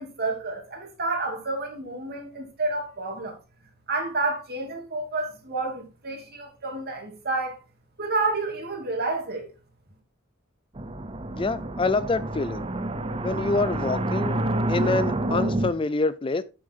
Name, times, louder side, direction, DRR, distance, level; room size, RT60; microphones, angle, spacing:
voice 1, 0.0-3.3 3.9-7.6 8.0-9.5, right 3 dB, 50° right, 2.7 m, -29 dB
sound 1, 10.7-15.7, right 1 dB, 25° right, 0.7 m, -28 dB
voice 2, 11.4-12.6 13.2-14.4 14.7-16.4, left 3 dB, 25° left, 0.4 m, -26 dB
8.9 x 6.8 x 3.7 m
head